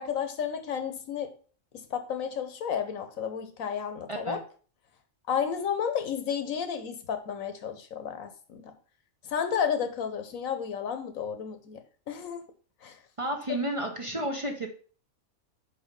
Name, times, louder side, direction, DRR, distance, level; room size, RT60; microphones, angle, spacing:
voice 1, 0.0-1.3 1.7-4.4 5.3-8.7 9.2-11.8 12.1-12.5 12.8-13.0 13.5-13.6, left 7 dB, 85° left, 8 dB, 1.3 m, -32 dB
voice 2, 13.2-14.7, right 1 dB, 25° right, 2 dB, 0.8 m, -31 dB
5.1 x 4.6 x 5.2 m, 0.40 s
omnidirectional pair, 1.4 m